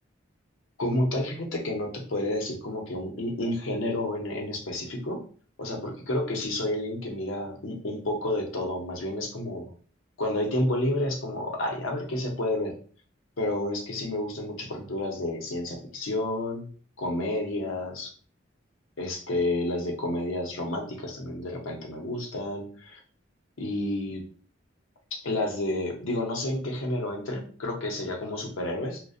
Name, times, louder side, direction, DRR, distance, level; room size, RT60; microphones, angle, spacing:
voice 1, 0.8-5.2 5.6-9.7 10.2-12.8 13.4-16.7 17.0-18.1 19.0-23.0 23.6-24.2 25.1-29.0, left 1 dB, 85° left, 1 dB, 0.7 m, -30 dB
2.4 x 2.1 x 2.5 m, 0.42 s
head